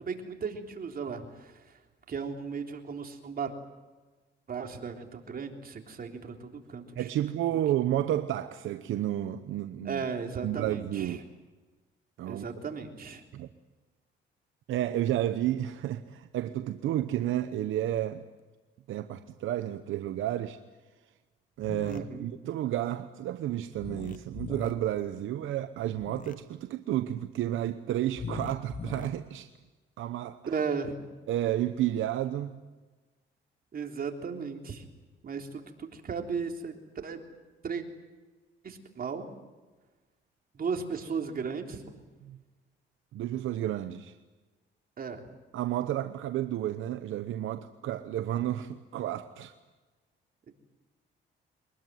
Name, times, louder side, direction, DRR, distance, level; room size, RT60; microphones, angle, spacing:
voice 1, 0.0-1.8 2.1-3.5 4.5-7.1 7.5-7.6 9.9-11.2 12.3-13.2 21.9-22.3 30.5-30.9 33.7-34.8 35.2-36.8 37.0-37.2 37.6-37.8 38.6-39.3 40.5-42.0 45.0-45.2, right 5 dB, 50° right, 3.6 m, -36 dB
voice 2, 7.0-10.0 10.4-11.2 12.2-12.4 13.3-13.5 14.7-18.2 18.9-20.6 21.6-29.5 30.0-30.4 31.3-32.6 42.2-42.4 43.1-44.2 45.5-49.5, right 12 dB, 80° right, 1.0 m, -31 dB
sound 1, 21.6-22.0 23.8-24.7 26.0-26.3 28.1-29.1, left 6 dB, 40° left, 1.3 m, -39 dB
23.5 x 20.5 x 9.3 m
cardioid pair, 90°, 20 cm